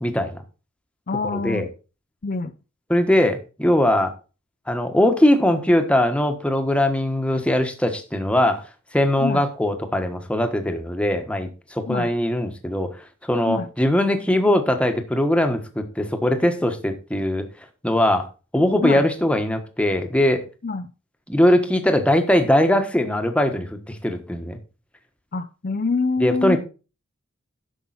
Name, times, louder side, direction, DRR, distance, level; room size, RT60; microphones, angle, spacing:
voice 1, 0.0-0.4 1.3-1.7 2.9-4.1 4.7-8.7 8.9-12.9 13.2-17.5 17.8-18.3 18.5-20.4 21.3-24.6 26.2-26.6, left 1 dB, 5° left, 6 dB, 1.4 m, -20 dB
voice 2, 1.1-1.7 2.2-2.5 9.2-9.4 11.9-12.1 13.5-13.7 18.8-19.1 20.6-20.9 25.3-26.6, left 4 dB, 45° left, 9 dB, 0.5 m, -25 dB
11.0 x 7.2 x 4.2 m, 0.32 s
head